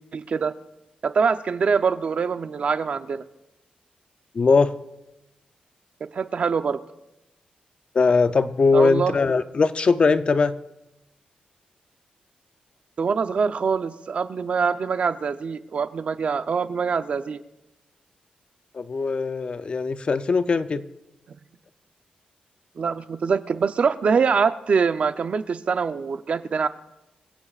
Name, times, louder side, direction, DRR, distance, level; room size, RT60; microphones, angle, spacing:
voice 1, 0.1-0.5 1.0-3.2 6.1-6.8 8.7-9.2 13.0-17.4 22.8-26.7, right 5 dB, 50° right, 10 dB, 0.7 m, -24 dB
voice 2, 4.3-4.7 7.9-10.6 18.7-20.8, left 4 dB, 40° left, 11 dB, 0.6 m, -20 dB
26.5 x 16.0 x 2.5 m, 0.94 s
wide cardioid pair, 115°, 3 cm